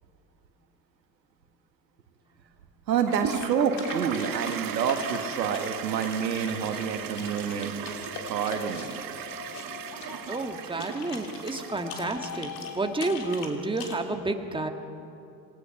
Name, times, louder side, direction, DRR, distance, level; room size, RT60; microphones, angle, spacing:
voice 1, 2.9-8.9, right 7 dB, 85° right, 6 dB, 1.6 m, -28 dB
sound 1, 3.1-14.0, left 5 dB, 55° left, 3.2 m, -43 dB
Toilet flush, 3.1-12.3, right 9 dB, 40° right, 1.6 m, -37 dB
sound 2, 7.3-13.3, left 6 dB, 85° left, 1.4 m, -44 dB
voice 2, 10.3-14.7, right 2 dB, 10° right, 5 dB, 1.8 m, -30 dB
27.0 x 19.0 x 5.8 m, 2.8 s
hypercardioid pair, 70°, 49 cm